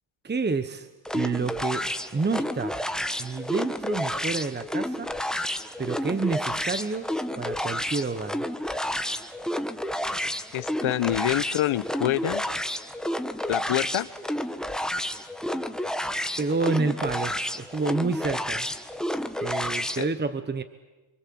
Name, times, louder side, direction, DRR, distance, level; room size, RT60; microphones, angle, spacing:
voice 1, 0.2-1.9 2.1-2.8 3.2-5.1 5.8-7.1 7.4-8.5 16.3-18.7 19.3-20.6, right 4 dB, 20° right, 11 dB, 1.2 m, -29 dB
sound 1, 1.0-20.0, equal, ahead, 1.4 m, -30 dB
voice 2, 10.5-12.4 13.5-14.1 20.0-20.1, left 13 dB, 75° left, 15 dB, 1.2 m, -26 dB
28.0 x 25.5 x 7.8 m, 1.2 s
cardioid pair, 105°, 49 cm